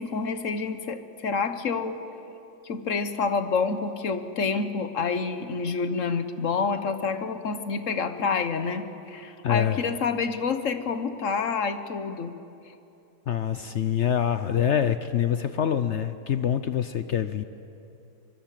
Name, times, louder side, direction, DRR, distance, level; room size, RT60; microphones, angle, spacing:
voice 1, 0.0-2.0 2.6-12.3, left 5 dB, 50° left, 9 dB, 1.3 m, -28 dB
voice 2, 9.4-9.8 13.3-17.4, left 9 dB, 70° left, 11 dB, 0.6 m, -25 dB
25.0 x 22.5 x 7.6 m, 2.8 s
omnidirectional pair, 2.0 m